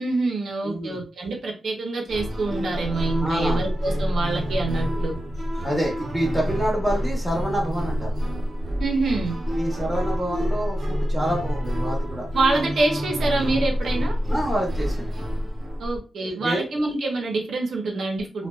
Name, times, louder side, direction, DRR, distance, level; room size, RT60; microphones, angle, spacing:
voice 1, 0.0-5.1 8.8-9.4 12.3-14.1 15.8-18.5, right 3 dB, 65° right, 0 dB, 0.6 m, -26 dB
voice 2, 0.6-1.0 3.2-3.6 5.6-8.1 9.5-12.3 14.3-15.2 16.2-16.6 18.4-18.5, right 1 dB, ahead, -2 dB, 0.9 m, -27 dB
sound 1, 2.1-16.0, equal, 30° right, 0.9 m, -27 dB
2.4 x 2.1 x 2.3 m, 0.34 s
wide cardioid pair, 115°, 0 cm